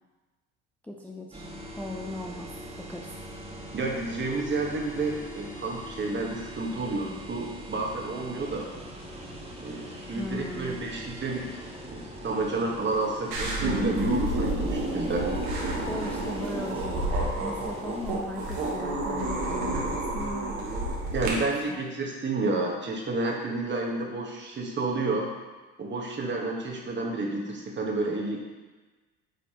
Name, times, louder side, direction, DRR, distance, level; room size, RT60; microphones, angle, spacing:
voice 1, 0.8-1.4 1.8-2.5 2.8-3.1 10.2-10.9 15.9-20.6 21.7-21.8, left 1 dB, 5° left, -1 dB, 0.6 m, -38 dB
sound 1, 1.3-18.2, equal, 20° right, 1.4 m, -42 dB
voice 2, 3.7-8.7 9.6-11.5 11.9-15.3 21.1-25.3 25.8-28.4, right 3 dB, 35° right, -1 dB, 1.5 m, -30 dB
sound 2, 13.3-21.3, right 1 dB, 75° right, 1.5 m, -29 dB
8.2 x 4.0 x 3.0 m, 1.2 s
hypercardioid pair, 70°, 31 cm